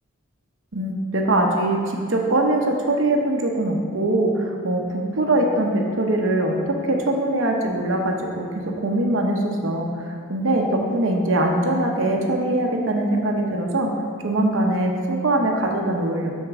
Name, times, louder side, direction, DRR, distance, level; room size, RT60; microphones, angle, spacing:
voice 1, 0.7-8.5 8.8-13.9 14.2-16.3, right 1 dB, 65° right, 1 dB, 0.9 m, -22 dB
8.1 x 6.4 x 3.6 m, 2.1 s
head